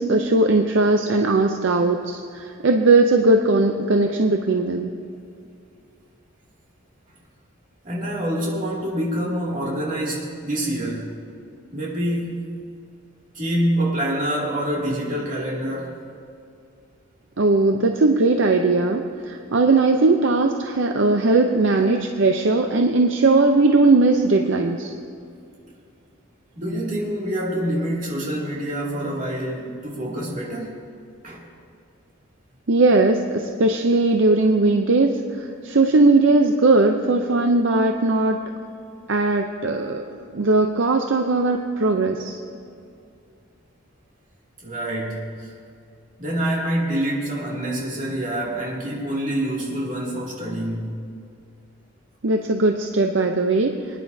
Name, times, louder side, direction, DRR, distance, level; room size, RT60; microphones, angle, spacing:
voice 1, 0.0-4.9 17.4-24.9 32.7-38.4 39.1-40.0 40.3-42.4 52.2-53.7, right 3 dB, 60° right, 4 dB, 0.6 m, -19 dB
voice 2, 7.8-11.2 11.7-12.5 13.3-16.0 26.6-30.8 31.2-31.5 44.6-45.5 46.2-51.0, right 1 dB, 40° right, -4 dB, 2.4 m, -26 dB
24.5 x 10.0 x 2.7 m, 2.4 s
head